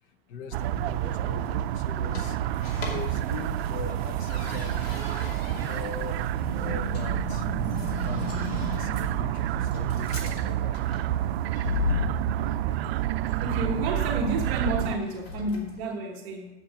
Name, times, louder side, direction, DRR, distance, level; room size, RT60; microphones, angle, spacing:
voice 1, 0.3-2.4 2.8-4.9 5.5-6.2 6.6-7.5 8.0-10.8, left 6 dB, 35° left, 11 dB, 0.6 m, -40 dB
sound 1, 0.5-15.0, right 12 dB, 85° right, 0.5 m, -29 dB
sound 2, 0.8-15.8, left 5 dB, 90° left, 2.6 m, -39 dB
sound 3, 6.2-11.5, equal, 20° left, 2.9 m, -37 dB
voice 2, 13.4-16.5, right 1 dB, 35° right, 0 dB, 1.4 m, -30 dB
7.5 x 7.4 x 7.4 m, 1.0 s
supercardioid pair, 175°, 30 cm